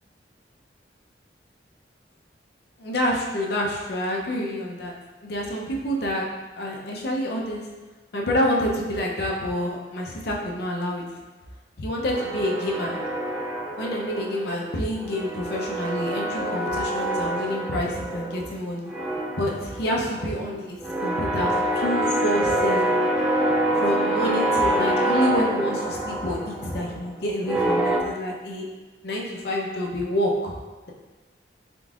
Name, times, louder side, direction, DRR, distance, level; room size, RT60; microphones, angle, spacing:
voice 1, 2.8-4.9 5.2-6.2 6.5-7.7 8.1-11.0 11.8-13.0 13.8-18.9 19.4-23.0 23.8-28.7 29.0-30.5, left 1 dB, 65° left, -2 dB, 0.6 m, -27 dB
sound 1, 12.1-14.7 14.9-18.6 18.9-28.0, right 1 dB, 5° right, 0.3 m, -26 dB
3.7 x 3.7 x 2.4 m, 1.2 s
head